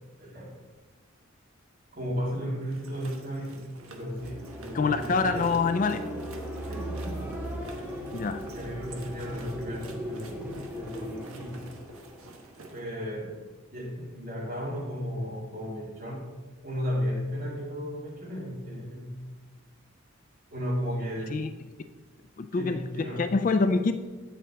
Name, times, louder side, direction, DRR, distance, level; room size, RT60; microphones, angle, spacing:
voice 1, 0.2-0.6 1.9-3.6 3.9-5.5 6.6-7.2 8.5-10.3 10.7-11.6 12.7-13.4 13.7-16.3 16.6-19.2 20.5-21.4 22.5-23.3, equal, 45° right, -4 dB, 2.3 m, -34 dB
sound 1, 2.6-12.8, right 3 dB, 85° right, 1.1 m, -50 dB
sound 2, 3.9-12.9, equal, 5° right, 1.2 m, -38 dB
voice 2, 4.7-6.0 8.1-8.4 21.3-21.5 22.4-23.9, left 4 dB, 35° left, 10 dB, 0.3 m, -26 dB
8.6 x 7.6 x 4.0 m, 1.3 s
head